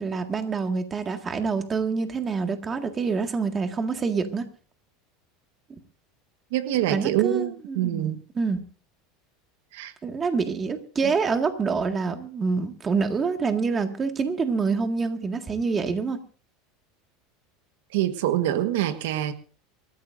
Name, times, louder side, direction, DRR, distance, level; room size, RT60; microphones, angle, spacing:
voice 1, 0.0-4.4 6.9-8.6 10.0-16.2, right 4 dB, 20° right, 5 dB, 1.8 m, -26 dB
voice 2, 6.5-8.2 9.7-9.9 11.0-11.1 17.9-19.3, right 13 dB, 80° right, 10 dB, 1.3 m, -25 dB
25.0 x 14.0 x 2.6 m, 0.38 s
supercardioid pair, 145°, 0 cm